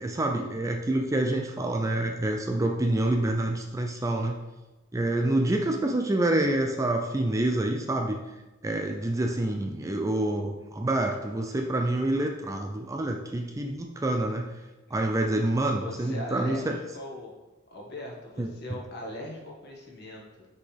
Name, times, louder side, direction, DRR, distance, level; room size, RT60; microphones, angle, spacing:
voice 1, 0.0-4.4 4.9-8.2 8.6-14.5 14.9-16.8 18.4-18.5, right 1 dB, 15° right, 3 dB, 0.4 m, -27 dB
voice 2, 15.7-17.3 17.7-20.5, left 1 dB, 50° left, -2 dB, 1.5 m, -40 dB
6.1 x 5.7 x 3.4 m, 1.1 s
head